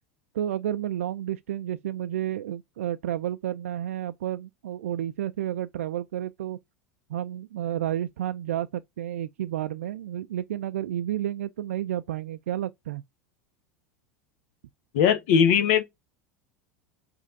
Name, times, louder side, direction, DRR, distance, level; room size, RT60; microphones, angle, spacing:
voice 1, 0.3-6.6 7.1-13.0, right 11 dB, 75° right, 0.3 m, -31 dB
voice 2, 14.9-15.8, left 8 dB, 65° left, 1.2 m, -20 dB
5.1 x 3.0 x 2.6 m
hypercardioid pair, 85°, 8 cm